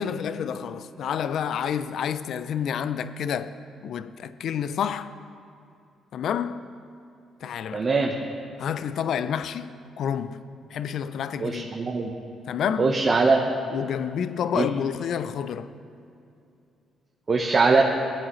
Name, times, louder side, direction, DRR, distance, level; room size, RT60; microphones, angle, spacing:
voice 1, 0.0-3.6 3.8-5.1 6.1-6.7 7.4-7.9 8.6-10.4 10.7-11.7 12.5-13.0 13.7-15.7, left 8 dB, 70° left, 0.4 m, -29 dB
voice 2, 7.7-8.1 11.4-12.1 12.8-13.4 14.5-14.7 17.3-17.8, right 4 dB, 40° right, 0.8 m, -21 dB
16.0 x 8.9 x 3.1 m
cardioid pair, 90°, 0 cm